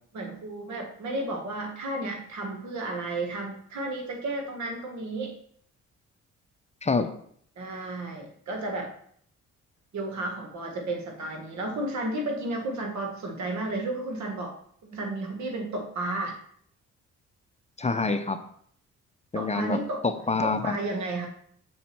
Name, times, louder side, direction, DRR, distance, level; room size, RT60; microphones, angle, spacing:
voice 1, 0.1-5.3 7.6-8.9 9.9-14.5 14.8-16.4 19.3-20.0 20.4-21.3, right 2 dB, 70° right, 3 dB, 1.7 m, -32 dB
voice 2, 17.8-18.4 19.3-19.8 20.0-20.7, left 3 dB, 20° left, 8 dB, 0.7 m, -26 dB
6.3 x 4.2 x 5.9 m, 0.63 s
cardioid pair, 70°, 29 cm